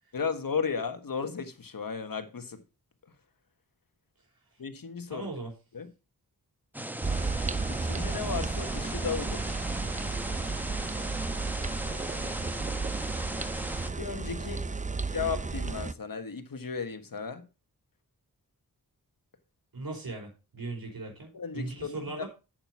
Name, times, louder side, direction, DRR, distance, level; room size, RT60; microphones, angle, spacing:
voice 1, 0.1-2.6 4.6-5.3 5.7-5.9 7.7-9.5 14.0-14.6 15.1-17.5 21.3-22.2, left 5 dB, 60° left, 1.5 m, -35 dB
voice 2, 5.1-5.5 14.4-14.8 19.7-22.3, right 3 dB, 65° right, 5.2 m, -39 dB
sound 1, 6.7-13.9, right 1 dB, 5° right, 1.1 m, -37 dB
sound 2, 7.0-15.9, right 3 dB, 20° right, 0.5 m, -33 dB
8.9 x 7.9 x 4.7 m
cardioid pair, 55°, 38 cm